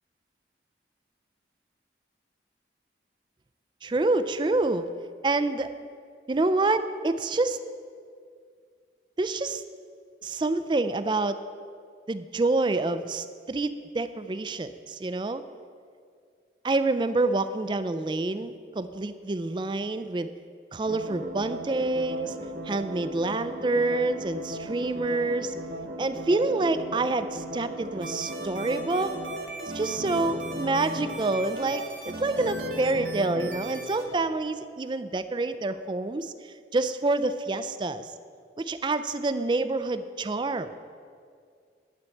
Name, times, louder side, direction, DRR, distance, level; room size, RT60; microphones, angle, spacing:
voice 1, 3.8-4.9 5.2-5.7 6.3-7.6 9.2-9.6 10.2-11.4 12.1-15.4 16.6-20.3 20.7-22.4 22.6-25.5 26.0-29.1 29.6-38.1 38.6-40.7, right 2 dB, 25° right, 11 dB, 0.3 m, -27 dB
sound 1, 20.9-34.4, equal, 65° right, 1.0 m, -37 dB
sound 2, 28.0-34.0, right 3 dB, 80° right, 1.7 m, -39 dB
11.5 x 4.6 x 8.3 m, 2.2 s
head